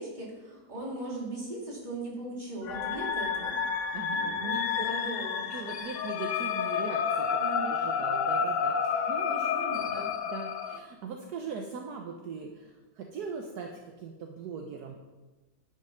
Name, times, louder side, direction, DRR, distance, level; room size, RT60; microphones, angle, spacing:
voice 1, 0.0-3.6 4.1-5.5 7.4-7.7 8.9-9.1 9.5-10.1, right 2 dB, 25° right, -5 dB, 3.0 m, -39 dB
sound 1, 2.6-10.8, left 6 dB, 65° left, 0.8 m, -30 dB
voice 2, 3.9-4.8 5.5-9.5 9.9-15.0, right 5 dB, 70° right, 2 dB, 1.3 m, -40 dB
10.5 x 6.0 x 5.7 m, 1.2 s
omnidirectional pair, 1.8 m